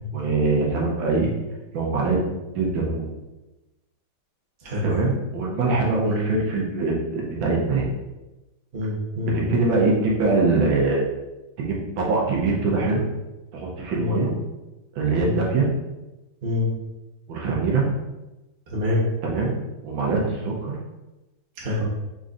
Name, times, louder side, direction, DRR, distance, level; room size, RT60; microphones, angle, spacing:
voice 1, 0.1-1.3 1.7-2.2 2.5-3.1 4.8-7.9 9.2-11.1 11.6-13.0 13.5-14.3 14.9-15.7 17.3-17.9 19.2-20.7, right 3 dB, 85° right, -2 dB, 1.6 m, -23 dB
voice 2, 8.7-9.6 14.0-14.2 15.2-15.4 16.4-16.7 18.7-19.1 21.6-21.8, left 2 dB, 35° right, -5 dB, 0.9 m, -26 dB
4.2 x 3.9 x 2.5 m, 1.0 s
omnidirectional pair, 2.1 m